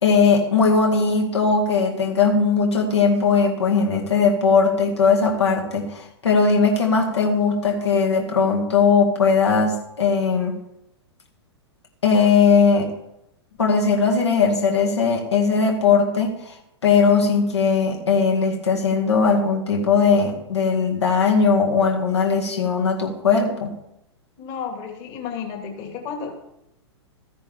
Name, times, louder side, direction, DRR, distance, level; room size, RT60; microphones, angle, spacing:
voice 1, 0.0-10.6 12.0-12.9 13.6-16.5 16.8-23.7, left 5 dB, 75° left, 0 dB, 2.0 m, -19 dB
voice 2, 24.4-26.4, left 6 dB, 40° left, 4 dB, 2.1 m, -32 dB
13.5 x 9.9 x 3.5 m, 0.84 s
figure-of-eight pair, 105°, 14 cm